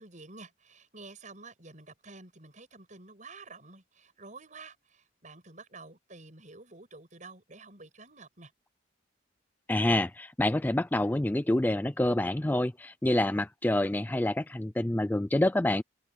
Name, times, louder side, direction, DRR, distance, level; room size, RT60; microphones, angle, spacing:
voice 1, 0.0-8.5, right 3 dB, 40° right, 7.5 m, -50 dB
voice 2, 9.7-15.8, left 1 dB, 10° left, 0.4 m, -27 dB
head